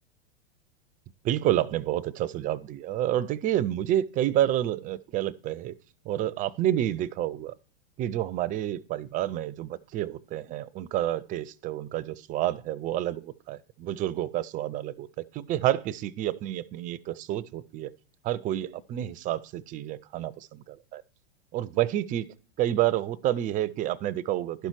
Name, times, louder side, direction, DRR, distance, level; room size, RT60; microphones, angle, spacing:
voice 1, 1.2-5.8 6.0-7.5 8.0-17.9 18.2-21.0 21.5-22.3 22.6-24.7, right 12 dB, 25° right, 0.4 m, -29 dB
11.5 x 5.7 x 4.6 m
hypercardioid pair, 105°, 32 cm